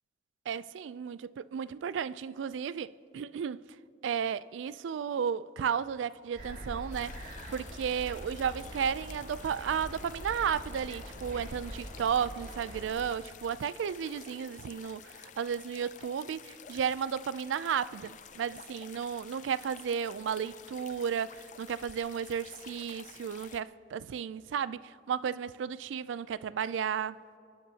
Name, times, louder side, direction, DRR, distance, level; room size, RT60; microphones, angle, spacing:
voice 1, 0.5-3.6 4.0-7.2 7.5-27.2, right 7 dB, 90° right, 0.3 m, -33 dB
sound 1, 6.4-12.9, equal, 55° right, 2.8 m, -44 dB
sound 2, 6.9-23.6, left 8 dB, 40° left, 0.4 m, -51 dB
29.0 x 10.5 x 2.8 m
head